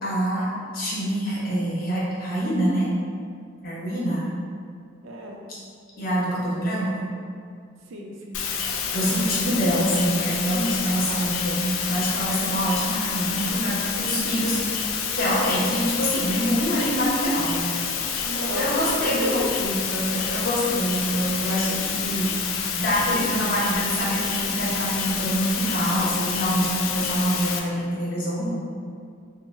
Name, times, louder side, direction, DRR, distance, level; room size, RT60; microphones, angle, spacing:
voice 1, 0.0-0.5 0.7-2.9 3.6-4.3 5.5-5.6 6.0-7.1 8.9-14.6 15.1-17.7 18.5-22.3 22.7-28.6, equal, 50° left, -7 dB, 0.8 m, -25 dB
voice 2, 5.0-5.4 7.9-8.5 11.1-11.4 12.7-12.8 18.2-19.7 22.1-22.2, equal, 75° right, 0 dB, 0.5 m, -34 dB
sound 1, 8.3-27.6, left 6 dB, 70° left, 0.3 m, -28 dB
3.3 x 2.0 x 3.1 m, 2.2 s
head